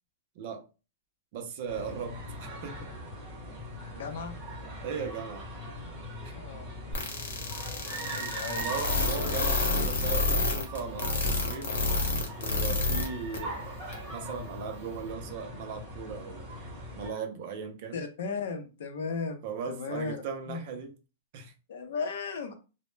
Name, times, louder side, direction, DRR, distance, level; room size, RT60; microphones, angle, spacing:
voice 1, 0.4-0.7 1.3-2.2 2.6-2.8 4.8-5.5 6.2-6.3 8.6-11.7 12.4-13.8 14.1-16.4 16.9-18.0 19.4-20.9 21.3-21.5, right 6 dB, 35° right, 0.4 m, -38 dB
sound 1, 1.7-17.1, equal, 10° right, 1.1 m, -40 dB
voice 2, 3.9-4.3 6.3-6.7 8.0-8.7 17.9-20.2 20.5-20.6 21.7-22.5, left 4 dB, 55° left, 0.5 m, -35 dB
sound 2, 6.9-13.1 13.3-13.4 13.9-14.0, left 3 dB, 70° left, 0.8 m, -28 dB
2.1 x 2.0 x 3.1 m
supercardioid pair, 175°, 0 cm